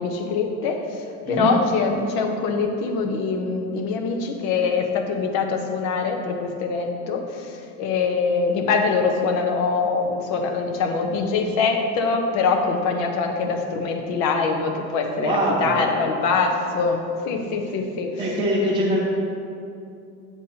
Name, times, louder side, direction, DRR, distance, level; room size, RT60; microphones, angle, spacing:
voice 1, 0.0-18.2, left 4 dB, 50° left, 3 dB, 0.8 m, -24 dB
voice 2, 15.2-15.8 17.6-17.7 18.2-19.0, right 1 dB, 15° right, -6 dB, 1.0 m, -23 dB
9.4 x 7.2 x 2.8 m, 2.6 s
cardioid pair, 175°, 35 cm